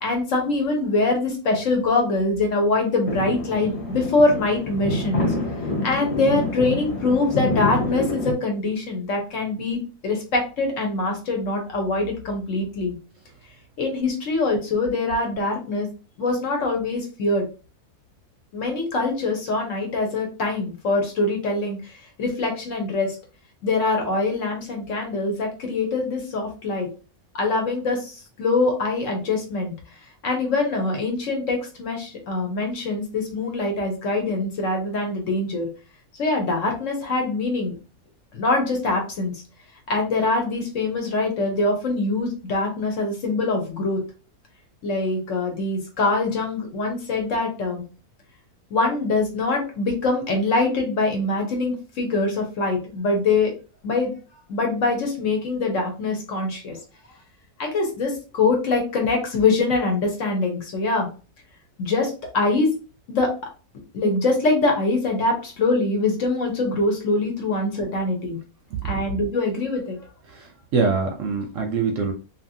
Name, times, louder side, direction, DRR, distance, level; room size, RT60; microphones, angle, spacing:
voice 1, 0.0-5.3 5.8-13.0 13.8-15.9 16.2-17.5 18.5-23.2 23.6-26.9 27.3-29.7 30.2-35.7 36.2-37.7 38.3-39.3 39.9-44.0 44.8-47.8 48.7-53.5 53.8-54.1 54.5-56.8 57.6-61.1 61.8-62.7 63.1-63.3 63.9-68.4 68.8-70.0, left 3 dB, 60° left, 2 dB, 1.1 m, -23 dB
sound 1, 3.1-8.3, left 2 dB, 30° left, 0.8 m, -27 dB
voice 2, 70.3-72.1, right 4 dB, 65° right, 3 dB, 0.8 m, -24 dB
2.8 x 2.6 x 2.6 m, 0.34 s
omnidirectional pair, 1.6 m